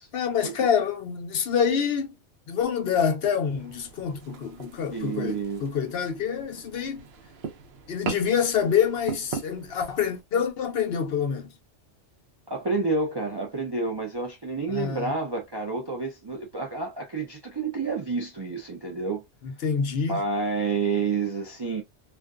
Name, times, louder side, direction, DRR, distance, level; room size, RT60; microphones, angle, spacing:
voice 1, 0.1-2.1 2.5-7.0 7.9-11.5 14.7-15.1 19.4-20.2, left 7 dB, 65° left, 0.8 m, -26 dB
sound 1, 3.6-10.2, right 6 dB, 70° right, 0.8 m, -40 dB
voice 2, 4.9-5.6 12.5-19.2 20.1-21.8, right 4 dB, 40° right, 0.3 m, -29 dB
2.4 x 2.3 x 2.3 m
omnidirectional pair, 1.2 m